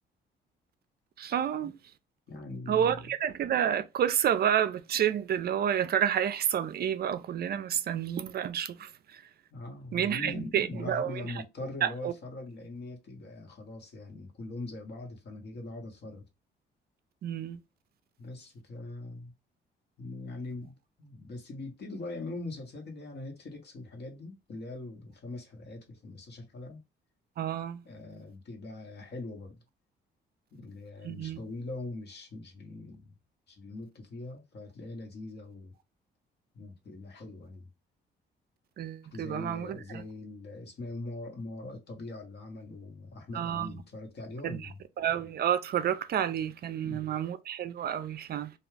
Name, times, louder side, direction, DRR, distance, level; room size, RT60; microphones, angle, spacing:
voice 1, 1.2-1.7 2.7-8.9 9.9-11.2 11.8-12.1 17.2-17.6 27.4-27.8 31.0-31.4 38.8-39.8 43.3-43.7 44.4-44.6 45.0-48.5, right 9 dB, 50° right, 0.4 m, -29 dB
voice 2, 2.3-3.1 9.5-16.2 18.2-19.3 20.0-26.8 27.8-29.6 30.5-33.1 33.5-35.7 36.5-37.7 39.1-44.8 46.8-47.1, left 2 dB, 60° left, 1.1 m, -42 dB
2.3 x 2.3 x 3.2 m
cardioid pair, 90°, 20 cm